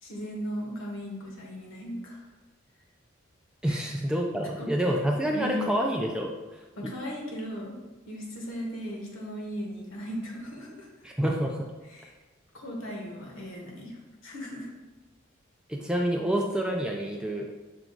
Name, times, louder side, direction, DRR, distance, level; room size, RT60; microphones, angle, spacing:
voice 1, 0.0-2.2 3.7-3.9 4.6-4.7 5.3-5.7 6.8-7.8 8.1-10.9 11.9-12.1 12.5-14.0 14.2-14.7, equal, 85° left, -1 dB, 1.2 m, -37 dB
voice 2, 3.6-6.3 6.8-6.9 11.0-11.6 15.7-17.5, right 1 dB, 5° right, 0 dB, 0.3 m, -28 dB
5.9 x 2.3 x 3.8 m, 1.2 s
head